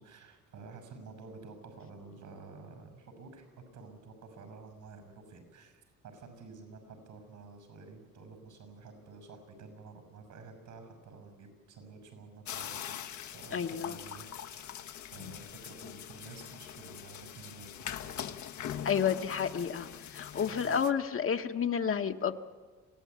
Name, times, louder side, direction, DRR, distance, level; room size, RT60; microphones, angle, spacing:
voice 1, 0.0-18.3 20.4-20.8, right 4 dB, 75° right, 8 dB, 6.5 m, -51 dB
sound 1, 12.4-20.9, left 10 dB, 70° left, 1.2 m, -42 dB
voice 2, 13.5-14.0 18.8-22.3, left 7 dB, 45° left, 7 dB, 1.2 m, -30 dB
26.5 x 16.5 x 9.5 m, 1.4 s
cardioid pair, 90°, 30 cm